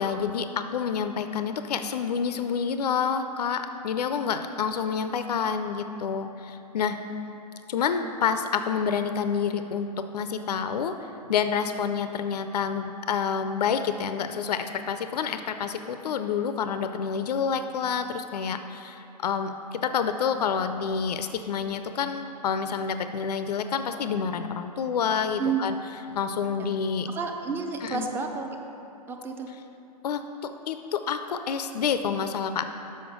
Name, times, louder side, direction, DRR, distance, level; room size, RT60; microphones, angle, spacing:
voice 1, 0.0-7.0 7.7-25.8 26.2-27.1 27.8-28.1 30.0-32.7, left 6 dB, 75° left, 9 dB, 0.4 m, -28 dB
voice 2, 27.1-28.5 29.1-29.5, right 6 dB, 10° right, 3 dB, 0.5 m, -30 dB
6.3 x 5.6 x 5.9 m, 2.9 s
hypercardioid pair, 115°, 21 cm